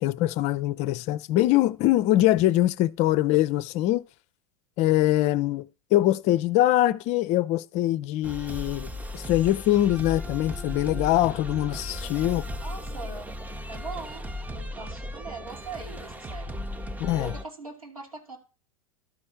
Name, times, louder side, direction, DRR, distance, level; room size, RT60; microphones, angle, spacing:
voice 1, 0.0-4.0 4.8-12.4 17.0-17.3, left 15 dB, 40° left, 0.5 m, -23 dB
sound 1, 8.2-17.4, left 1 dB, 10° right, 0.7 m, -36 dB
voice 2, 12.6-13.3 13.7-14.2 14.5-16.5 17.2-18.4, right 3 dB, 90° right, 2.7 m, -40 dB
12.0 x 4.3 x 5.8 m
figure-of-eight pair, 85°, 18 cm